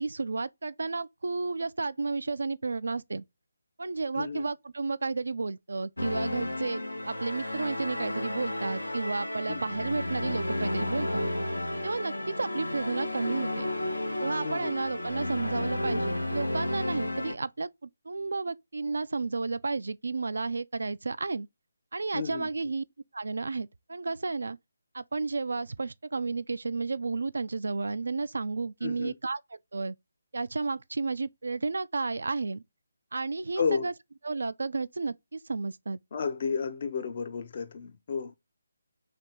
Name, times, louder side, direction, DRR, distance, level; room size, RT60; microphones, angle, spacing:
voice 1, 0.0-3.2 3.8-11.3 11.8-13.7 14.2-21.5 21.9-22.8 23.1-24.6 24.9-29.4 29.7-30.0 30.3-32.6 33.1-33.9 34.2-36.0, right 3 dB, 60° right, 0.3 m, -32 dB
voice 2, 4.2-4.5 9.5-9.6 14.4-14.7 22.1-22.5 28.8-29.1 33.6-33.9 36.1-38.3, left 5 dB, 40° left, 0.5 m, -32 dB
sound 1, 6.0-17.3, left 1 dB, 75° left, 0.7 m, -32 dB
3.3 x 2.9 x 4.1 m
figure-of-eight pair, 150°, 0 cm